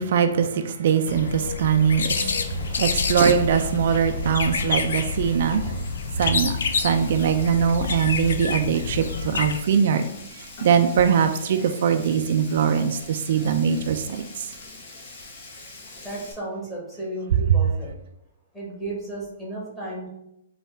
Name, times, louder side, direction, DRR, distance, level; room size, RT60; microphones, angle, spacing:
voice 1, 0.0-5.9 6.2-10.1 10.4-14.5, right 7 dB, 60° right, 0.3 m, -22 dB
sound 1, 1.1-9.6, left 5 dB, 75° left, 0.4 m, -28 dB
Frying (food), 2.2-16.3, left 3 dB, 55° left, 1.0 m, -45 dB
voice 2, 16.0-17.9 18.5-20.1, right 1 dB, 10° left, 1.5 m, -34 dB
4.2 x 2.3 x 3.3 m
hypercardioid pair, 140°, 0 cm